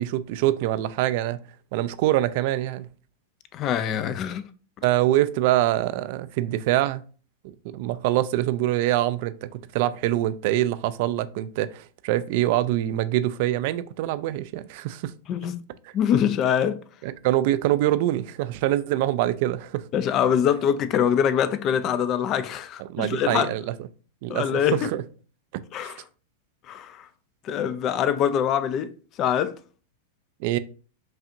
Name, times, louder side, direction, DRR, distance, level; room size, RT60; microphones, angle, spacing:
voice 1, 0.0-1.4 1.7-2.9 4.8-7.0 7.4-15.1 17.0-19.8 22.8-23.8 24.2-25.0 25.5-25.9 30.4-30.6, right 14 dB, 55° right, 0.3 m, -24 dB
voice 2, 3.5-4.5 15.3-15.6 15.9-16.8 19.9-23.5 24.3-24.9 25.7-26.0 26.7-27.1 27.4-28.9 29.2-29.5, left 9 dB, 40° left, 0.4 m, -24 dB
5.4 x 2.4 x 2.6 m
hypercardioid pair, 110°, 0 cm